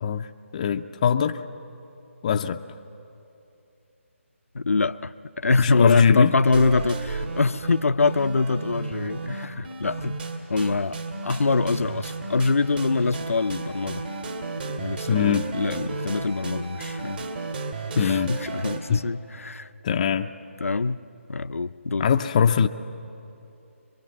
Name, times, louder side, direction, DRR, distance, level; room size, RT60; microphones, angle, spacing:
voice 1, 0.0-1.4 2.2-2.6 5.6-6.3 15.1-15.5 18.0-18.3 18.9-19.0 19.8-20.3 22.0-22.7, left 7 dB, 30° left, 6 dB, 0.5 m, -21 dB
voice 2, 4.5-10.2 10.5-14.0 14.8-17.2 18.0-19.7 20.6-21.0 21.3-22.1, left 3 dB, 80° left, 12 dB, 0.6 m, -24 dB
sound 1, 6.4-18.8, right 3 dB, 45° right, 2.5 m, -33 dB
24.0 x 22.5 x 7.5 m, 2.8 s
figure-of-eight pair, 155°, 7 cm